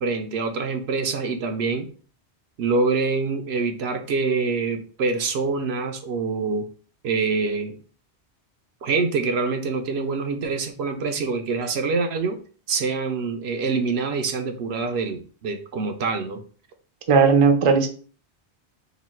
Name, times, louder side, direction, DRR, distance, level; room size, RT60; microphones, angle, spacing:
voice 1, 0.0-1.9 2.6-6.6 7.0-7.7 8.8-12.4 12.7-16.4, right 4 dB, 70° right, 6 dB, 0.8 m, -25 dB
voice 2, 17.1-17.9, right 5 dB, 40° right, 5 dB, 0.5 m, -16 dB
3.0 x 2.7 x 4.2 m, 0.41 s
omnidirectional pair, 1.2 m